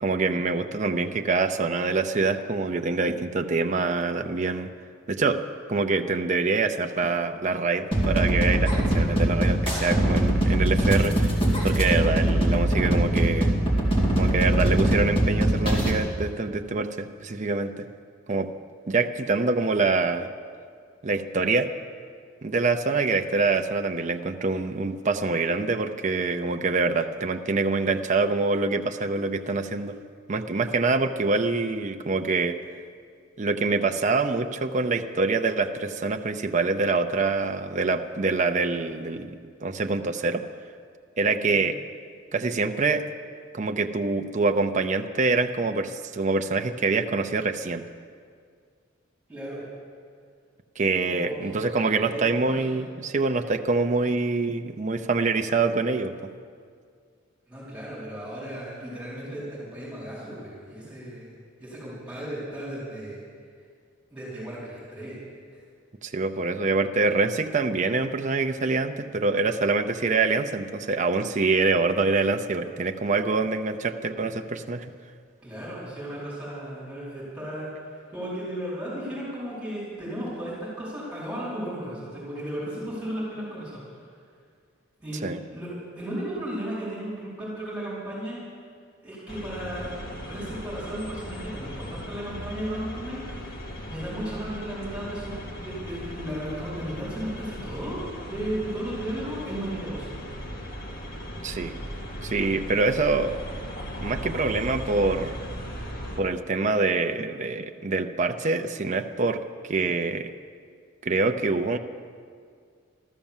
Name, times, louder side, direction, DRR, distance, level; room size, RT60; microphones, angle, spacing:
voice 1, 0.0-4.7 5.1-5.4 5.7-11.3 11.6-13.5 14.2-17.9 18.3-18.5 18.9-20.3 21.0-21.7 22.4-30.0 30.3-32.6 33.4-40.4 41.2-41.8 42.3-43.1 43.5-47.8 50.8-56.1 66.0-74.9 85.2-85.4 101.4-101.7 102.2-103.3 104.0-105.4 106.2-110.3 111.0-111.8, right 3 dB, 40° right, 6 dB, 0.6 m, -25 dB
sound 1, 7.9-15.9, right 1 dB, 30° left, 2.4 m, -22 dB
voice 2, 49.3-49.6 51.1-52.2 52.5-52.8 57.5-61.3 61.6-63.2 64.1-65.2 65.5-65.6 75.4-84.0 85.0-85.2 85.5-88.4 89.0-89.9 90.2-93.6 93.8-100.1, right 1 dB, 5° right, -8 dB, 4.7 m, -35 dB
sound 2, 89.3-106.2, equal, 50° left, 2.2 m, -37 dB
13.5 x 13.0 x 7.3 m, 2.1 s
head